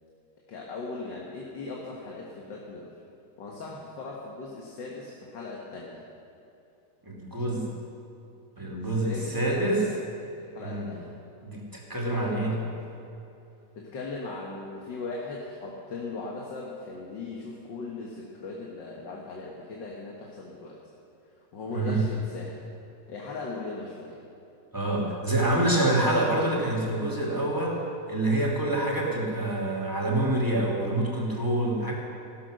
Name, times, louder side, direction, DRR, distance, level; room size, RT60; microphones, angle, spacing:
voice 1, 0.5-2.9 3.4-6.0 8.8-10.0 10.4-11.1 12.1-12.8 13.8-20.7 21.5-22.6 23.1-24.2, left 3 dB, 85° left, -2 dB, 2.3 m, -38 dB
voice 2, 7.1-7.7 8.6-9.8 10.6-10.9 11.4-12.6 21.7-22.0 24.7-27.8 28.1-31.9, right 1 dB, 10° right, -3 dB, 2.8 m, -26 dB
16.0 x 12.5 x 6.5 m, 2.8 s
omnidirectional pair, 1.9 m